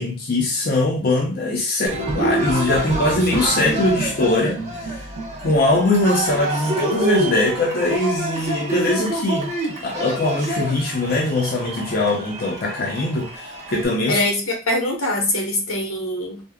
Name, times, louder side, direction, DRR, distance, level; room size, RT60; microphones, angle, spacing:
voice 1, 0.0-5.0 5.4-9.5 9.8-14.2, left 2 dB, 45° left, 0.5 m, -21 dB
Cheering, 1.9-13.9, right 1 dB, 35° right, 0.7 m, -27 dB
voice 2, 14.1-16.4, left 1 dB, 85° left, 0.9 m, -23 dB
3.4 x 2.0 x 2.2 m
head